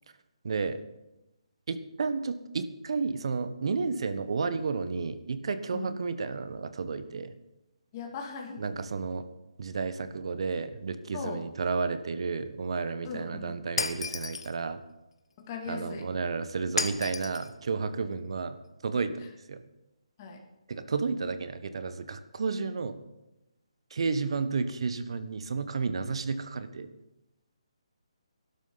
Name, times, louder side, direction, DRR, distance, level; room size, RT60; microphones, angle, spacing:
voice 1, 0.4-0.8 1.7-7.3 8.6-9.2 9.6-14.8 15.7-18.6 18.8-19.2 19.5-19.6 20.7-23.0 23.9-26.9, right 4 dB, 55° right, 11 dB, 1.2 m, -32 dB
voice 2, 7.9-8.7 11.1-11.5 13.0-13.6 15.4-16.0 20.2-20.5, left 4 dB, 30° left, 1 dB, 2.7 m, -39 dB
Shatter, 13.8-14.5 16.8-17.5, left 4 dB, 60° left, 1.2 m, -32 dB
20.0 x 12.0 x 4.1 m, 0.96 s
figure-of-eight pair, 145°, 3 cm